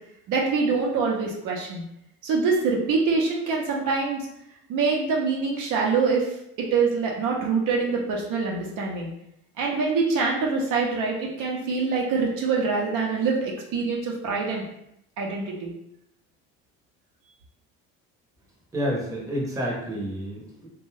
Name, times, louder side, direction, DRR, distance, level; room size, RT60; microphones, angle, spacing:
voice 1, 0.3-1.8 2.2-4.3 4.7-9.1 9.6-14.6 15.2-15.7, right 4 dB, 60° right, -1 dB, 0.7 m, -25 dB
voice 2, 18.7-20.7, equal, 10° right, -3 dB, 0.8 m, -29 dB
2.5 x 2.3 x 3.1 m, 0.80 s
supercardioid pair, 100°, 35 cm